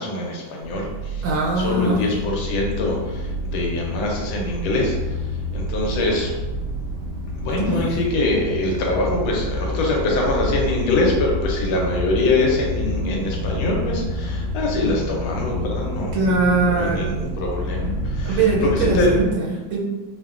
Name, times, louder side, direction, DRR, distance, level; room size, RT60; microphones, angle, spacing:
voice 1, 0.0-1.2 1.6-6.3 7.4-16.2 16.5-19.2, left 2 dB, 85° left, -1 dB, 1.5 m, -24 dB
sound 1, 0.6-19.3, left 1 dB, 70° right, 0.9 m, -28 dB
voice 2, 1.2-2.2 7.6-7.9 16.1-17.2 18.2-19.8, right 3 dB, 85° right, -2 dB, 1.5 m, -22 dB
3.5 x 2.1 x 2.4 m, 1.2 s
omnidirectional pair, 2.2 m